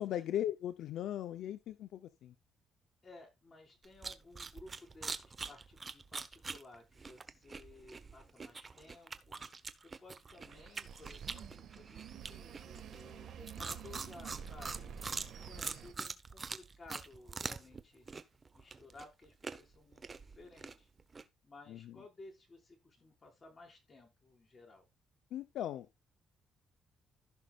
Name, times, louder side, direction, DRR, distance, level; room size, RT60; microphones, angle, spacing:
voice 1, 0.0-2.3 21.7-22.0 25.3-25.9, left 11 dB, 80° left, 0.7 m, -38 dB
voice 2, 3.0-9.5 9.8-18.1 18.5-20.9 21.4-24.9, left 2 dB, 35° left, 5.3 m, -57 dB
sound 1, 3.8-17.8 18.1-21.2, right 4 dB, 35° right, 1.0 m, -44 dB
sound 2, 10.3-15.9, right 8 dB, 70° right, 1.8 m, -49 dB
15.5 x 6.3 x 2.5 m
cardioid pair, 90°, 0 cm